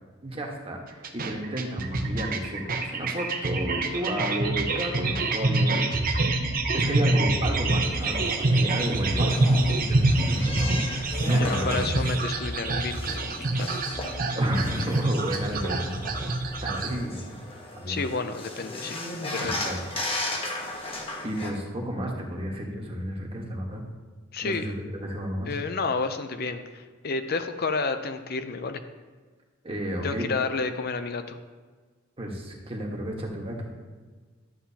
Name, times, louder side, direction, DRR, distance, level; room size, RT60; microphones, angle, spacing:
voice 1, 0.2-6.2 6.7-9.4 9.8-12.0 14.3-16.0 16.6-17.3 17.7-18.0 19.5-19.8 21.2-23.8 24.4-24.7 25.0-25.5 29.6-30.3 32.2-33.7, equal, 30° right, 0 dB, 1.3 m, -32 dB
sound 1, 1.0-16.9, right 2 dB, 45° right, 0.8 m, -26 dB
sound 2, 7.9-21.5, left 1 dB, 30° left, 1.2 m, -36 dB
voice 2, 11.4-13.9 17.9-19.0 19.3-19.6 24.3-24.7 25.5-28.8 30.0-31.4, left 4 dB, 50° left, 9 dB, 0.5 m, -31 dB
12.0 x 7.6 x 2.8 m, 1.4 s
head